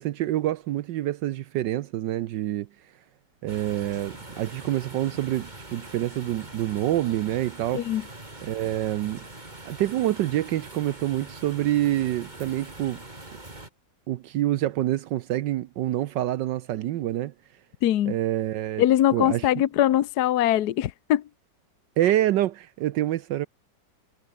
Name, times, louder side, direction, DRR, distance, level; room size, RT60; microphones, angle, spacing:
voice 1, 0.0-2.7 3.4-7.8 8.4-9.2 9.7-13.0 14.1-17.3 18.1-18.8 19.1-19.5 22.0-23.5, right 13 dB, 75° right, 1.3 m, -26 dB
sound 1, 3.5-13.7, right 2 dB, 20° right, 3.7 m, -43 dB
voice 2, 17.8-18.2 18.8-21.2, left 12 dB, 65° left, 1.3 m, -22 dB
omnidirectional pair, 2.0 m